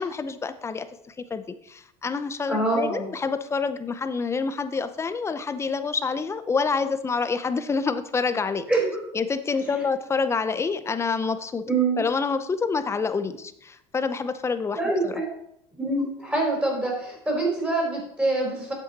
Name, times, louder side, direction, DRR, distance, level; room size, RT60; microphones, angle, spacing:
voice 1, 0.0-8.6 9.1-11.6 12.0-15.2, left 5 dB, 20° left, 11 dB, 0.6 m, -27 dB
voice 2, 2.5-3.1 8.7-9.0 11.7-12.0 14.8-15.3 15.8-18.7, right 2 dB, 10° right, -1 dB, 4.2 m, -25 dB
9.0 x 7.7 x 4.1 m, 0.74 s
cardioid pair, 125°, 14 cm